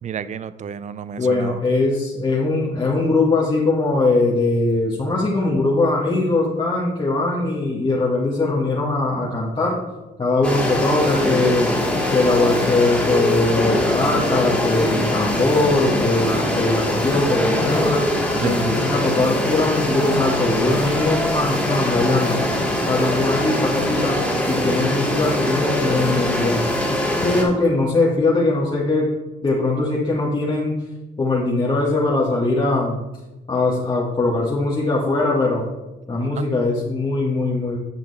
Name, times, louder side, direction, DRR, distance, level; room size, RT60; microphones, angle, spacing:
voice 1, 0.0-1.6 18.4-18.6 36.2-36.5, right 8 dB, 35° right, 15 dB, 0.4 m, -30 dB
voice 2, 1.2-9.8 10.2-11.7 12.1-18.0 18.4-22.4 22.9-24.2 24.5-26.7 27.2-29.1 29.4-30.7 31.2-33.0 33.5-35.6 36.1-37.8, left 2 dB, 25° left, -5 dB, 1.7 m, -21 dB
sound 1, 10.4-27.4, left 1 dB, 5° left, 2.5 m, -22 dB
8.7 x 5.9 x 4.2 m, 1.1 s
cardioid pair, 90°, 20 cm